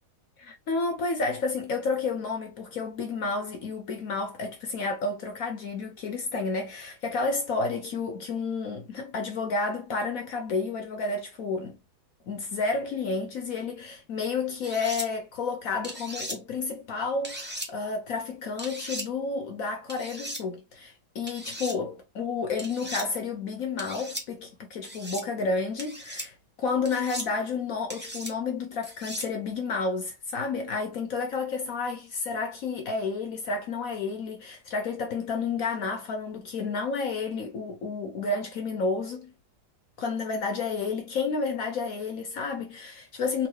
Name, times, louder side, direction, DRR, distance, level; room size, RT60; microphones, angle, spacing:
voice 1, 0.4-11.8 12.3-39.3 40.0-43.5, left 4 dB, 65° left, 1.2 m, -31 dB
sound 1, 14.6-15.1 15.8-16.4 17.2-17.7 18.6-19.1 19.9-20.4 21.3-21.8 22.6-23.1 23.8-24.2 24.8-25.2 25.8-26.3 26.8-27.3 27.9-28.3 28.8-29.3, right 1 dB, 10° right, 0.6 m, -37 dB
3.9 x 2.6 x 3.1 m
omnidirectional pair, 1.7 m